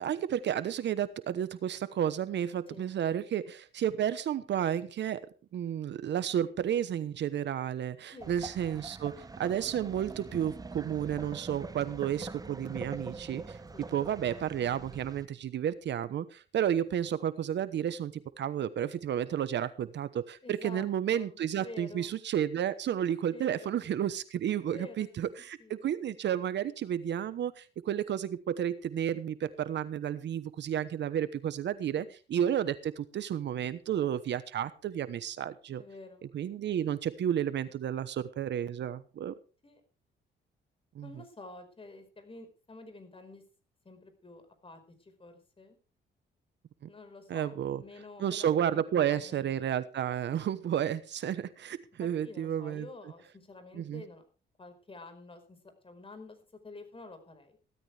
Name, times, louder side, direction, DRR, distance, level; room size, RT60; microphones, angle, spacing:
voice 1, 0.0-5.3 5.5-35.8 36.3-39.4 40.9-41.1 46.8-46.9 47.3-47.8 48.2-52.9 53.7-54.0, right 10 dB, 65° right, 15 dB, 1.0 m, -32 dB
sound 1, 8.2-15.3, right 3 dB, 20° right, 0.8 m, -44 dB
voice 2, 20.4-22.1 23.3-23.9 24.6-25.1 25.6-25.8 31.9-32.1 35.8-36.3 39.6-39.8 41.0-43.4 43.8-45.8 46.9-49.7 52.0-54.2 54.6-55.6 55.8-57.6, left 2 dB, 25° left, 8 dB, 4.9 m, -49 dB
16.5 x 13.5 x 3.4 m, 0.34 s
cardioid pair, 90°, 20 cm